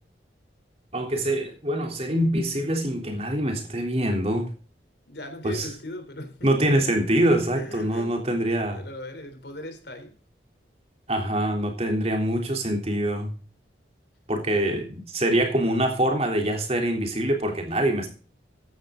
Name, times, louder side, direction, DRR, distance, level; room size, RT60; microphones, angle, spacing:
voice 1, 0.9-4.5 5.4-5.7 6.4-8.8 11.1-13.3 14.3-18.1, right 1 dB, 35° right, 3 dB, 3.4 m, -24 dB
voice 2, 5.1-6.7 7.5-8.1 8.7-10.1, left 1 dB, 65° left, 6 dB, 3.6 m, -38 dB
15.0 x 11.0 x 3.8 m, 0.40 s
head